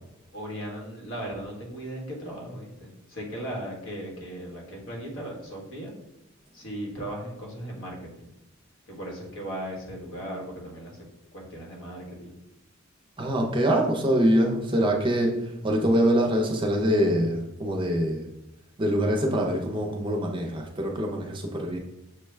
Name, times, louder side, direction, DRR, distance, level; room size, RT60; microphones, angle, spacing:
voice 1, 0.3-5.9 6.5-8.3 8.9-11.0 11.3-12.3, right 1 dB, 70° left, -1 dB, 1.4 m, -37 dB
voice 2, 13.2-15.3 15.6-18.3 18.8-21.8, equal, 25° right, 1 dB, 0.6 m, -24 dB
6.4 x 2.2 x 3.3 m, 0.88 s
head